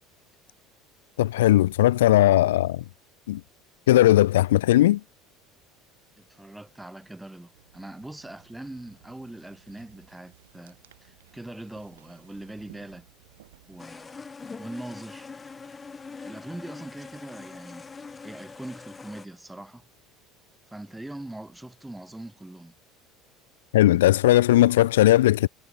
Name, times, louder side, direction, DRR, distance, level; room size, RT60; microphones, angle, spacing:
voice 1, 1.2-2.8 3.3-3.4 3.9-5.0 23.7-25.5, left 14 dB, 85° left, 0.3 m, -18 dB
voice 2, 6.2-13.1 13.7-14.3 14.6-15.3 16.2-17.9 18.2-19.9 20.7-22.7, right 1 dB, 10° right, 2.1 m, -42 dB
sound 1, 7.5-13.9, right 13 dB, 85° right, 2.8 m, -57 dB
sound 2, 13.8-19.3, left 4 dB, 25° left, 1.5 m, -43 dB
hypercardioid pair, 80°, 0 cm